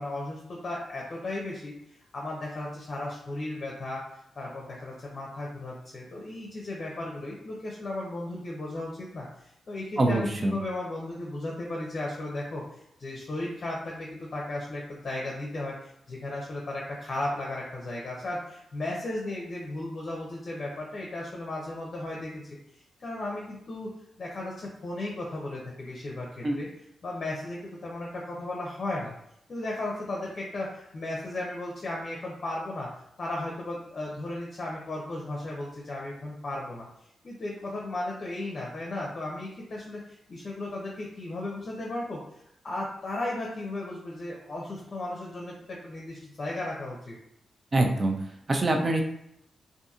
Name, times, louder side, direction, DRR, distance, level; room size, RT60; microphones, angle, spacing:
voice 1, 0.0-12.6 13.0-22.4 23.0-23.9 24.2-26.7 27.0-29.1 29.5-32.9 33.2-36.9 37.2-42.2 42.6-47.2, left 2 dB, 50° left, -3 dB, 0.6 m, -35 dB
voice 2, 10.0-10.6 26.4-26.6 47.7-48.2 48.5-49.0, right 2 dB, 40° right, 2 dB, 0.4 m, -24 dB
2.7 x 2.5 x 2.4 m, 0.75 s
cardioid pair, 75°, 0 cm